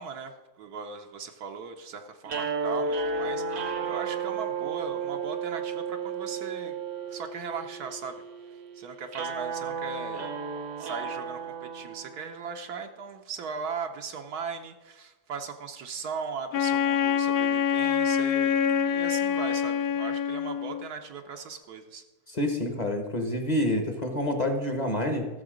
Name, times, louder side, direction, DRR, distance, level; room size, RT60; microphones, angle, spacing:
voice 1, 0.0-6.7 7.1-8.2 8.5-10.3 10.8-22.0, right 5 dB, 75° right, 4 dB, 1.2 m, -38 dB
sound 1, 2.2-12.5, right 5 dB, 50° right, 1.0 m, -33 dB
Wind instrument woodwind instrument, 16.5-20.9, left 8 dB, 75° left, 1.0 m, -25 dB
voice 2, 22.3-25.3, left 1 dB, 30° left, 5 dB, 1.0 m, -28 dB
13.5 x 6.8 x 5.0 m, 1.2 s
omnidirectional pair, 1.7 m